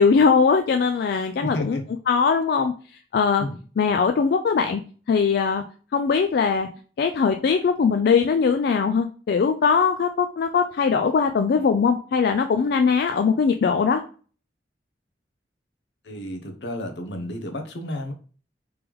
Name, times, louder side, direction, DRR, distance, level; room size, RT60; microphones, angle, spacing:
voice 1, 0.0-1.8 2.1-2.7 3.1-3.5 3.8-4.8 5.1-5.6 5.9-6.7 7.0-14.0, left 5 dB, 60° left, 6 dB, 0.3 m, -20 dB
voice 2, 1.4-1.8 3.4-3.6 16.0-18.1, left 1 dB, 75° left, 5 dB, 0.8 m, -31 dB
3.4 x 3.0 x 3.4 m, 0.40 s
head